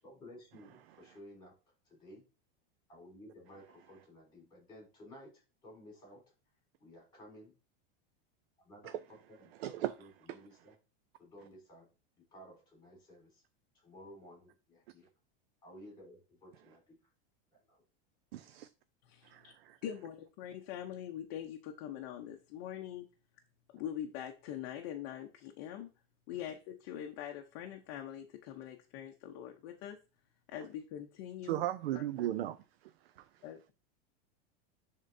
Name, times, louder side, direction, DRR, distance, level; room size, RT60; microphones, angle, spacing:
voice 1, 0.0-1.5 1.9-2.2 2.9-6.2 6.8-7.5 8.6-10.8 11.2-11.9 12.2-13.4 13.8-15.1 15.6-17.0 17.7-17.8 18.4-18.5, equal, 15° left, 3.9 m, -55 dB
voice 2, 9.6-9.9 18.3-18.7 19.3-19.8 31.5-32.6, right 13 dB, 85° right, 0.6 m, -35 dB
voice 3, 19.0-19.5 19.8-23.1 23.7-25.9 26.3-30.0 30.5-31.6 31.9-32.0 33.4-33.7, left 10 dB, 45° left, 0.7 m, -43 dB
11.0 x 3.7 x 2.7 m
supercardioid pair, 160°, 30 cm